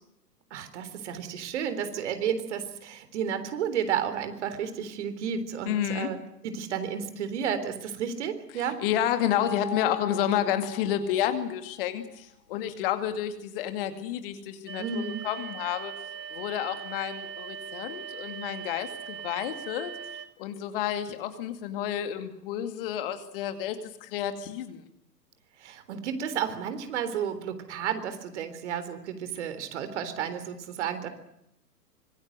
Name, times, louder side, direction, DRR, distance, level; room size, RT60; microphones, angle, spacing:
voice 1, 0.5-6.2 6.4-8.8 9.5-9.6 14.8-15.2 25.6-31.1, right 8 dB, 45° right, 10 dB, 3.7 m, -32 dB
voice 2, 5.7-6.1 8.5-15.9 16.3-19.9 20.4-24.8, left 10 dB, 35° left, 9 dB, 2.4 m, -30 dB
sound 1, 9.4-11.7, left 9 dB, 80° left, 2.5 m, -39 dB
sound 2, 14.7-20.3, right 7 dB, 80° right, 3.2 m, -40 dB
25.5 x 22.5 x 8.0 m, 0.79 s
figure-of-eight pair, 115°, 48 cm